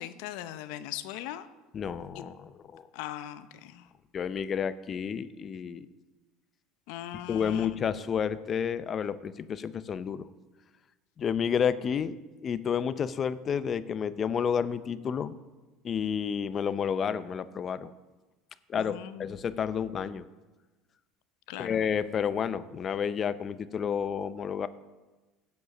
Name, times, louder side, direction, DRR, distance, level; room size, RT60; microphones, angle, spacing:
voice 1, 0.0-1.5 2.1-2.2 2.9-3.9 6.9-7.8 18.7-19.4 21.5-21.8, left 12 dB, 75° left, 13 dB, 0.7 m, -40 dB
voice 2, 1.7-2.8 4.1-5.9 7.3-10.3 11.2-12.2 12.4-15.4 15.8-17.9 18.7-20.3 21.6-24.7, left 7 dB, 35° left, 15 dB, 0.5 m, -30 dB
16.0 x 5.4 x 6.0 m, 1.2 s
supercardioid pair, 115°, 0 cm